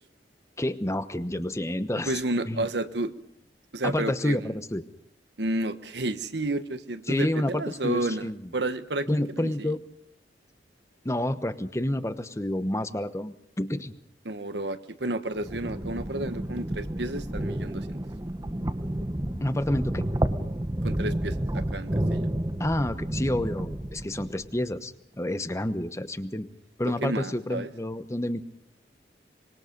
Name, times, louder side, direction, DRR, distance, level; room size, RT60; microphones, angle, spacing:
voice 1, 0.6-2.2 2.4-2.6 3.8-4.8 7.1-8.4 9.1-9.8 11.0-13.9 19.4-20.1 22.6-26.5 26.8-28.4, left 1 dB, 15° left, 11 dB, 1.0 m, -29 dB
voice 2, 2.0-3.1 3.7-4.5 5.4-9.7 14.2-17.9 20.8-22.3 27.0-27.7, right 2 dB, 75° right, 10 dB, 1.2 m, -31 dB
sound 1, 15.3-24.5, right 1 dB, 20° right, 0.9 m, -30 dB
25.0 x 21.5 x 5.3 m, 0.73 s
head